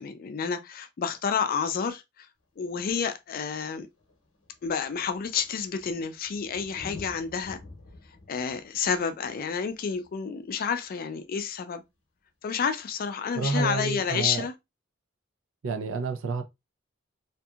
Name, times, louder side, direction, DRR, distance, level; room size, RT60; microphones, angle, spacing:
voice 1, 0.0-2.3 2.6-3.9 4.6-7.6 8.3-11.8 12.4-14.5, left 6 dB, 45° left, 0.4 m, -30 dB
Thunder, 2.4-2.5 3.5-3.6 3.8-11.1 12.8-12.9, left 3 dB, 80° left, 0.8 m, -50 dB
voice 2, 13.3-14.5 15.6-16.4, right 3 dB, 75° right, 0.5 m, -29 dB
2.7 x 2.5 x 2.3 m
head